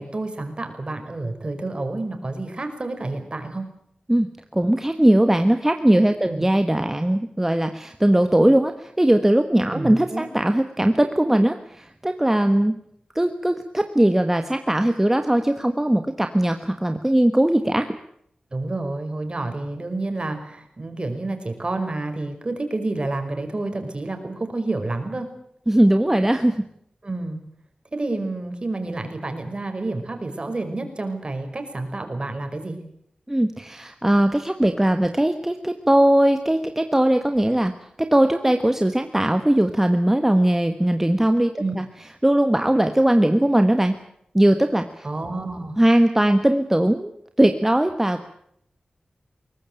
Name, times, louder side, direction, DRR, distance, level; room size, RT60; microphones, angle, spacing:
voice 1, 0.0-3.7 6.2-6.5 9.7-10.3 18.5-25.3 27.0-27.4 27.9-32.8 41.6-41.7 45.0-45.8, right 2 dB, 40° right, 6 dB, 5.0 m, -29 dB
voice 2, 4.5-12.7 13.1-18.0 25.7-26.5 33.3-37.7 38.0-41.8 42.2-44.0 44.3-45.0 45.8-47.1 47.4-48.2, right 1 dB, 15° right, 7 dB, 1.4 m, -19 dB
22.0 x 19.0 x 9.0 m, 0.72 s
wide cardioid pair, 80°, 3 cm